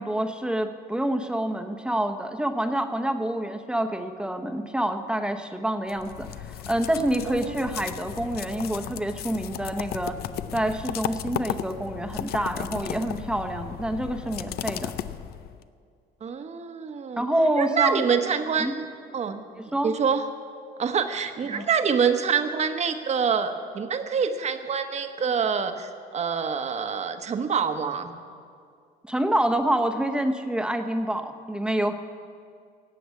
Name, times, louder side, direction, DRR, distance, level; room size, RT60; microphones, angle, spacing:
voice 1, 0.0-6.3 6.7-10.2 10.5-14.9 17.2-18.0 18.6-18.7 19.6-19.9 21.5-21.6 29.1-31.9, right 1 dB, 5° right, 6 dB, 1.0 m, -27 dB
sound 1, 5.9-15.6, left 11 dB, 70° left, 0.6 m, -35 dB
voice 2, 7.3-7.6 16.2-17.3 17.6-18.8 19.1-20.2 20.8-28.1, right 6 dB, 40° right, 8 dB, 1.2 m, -26 dB
18.0 x 7.8 x 8.3 m, 2.3 s
cardioid pair, 110°, 17 cm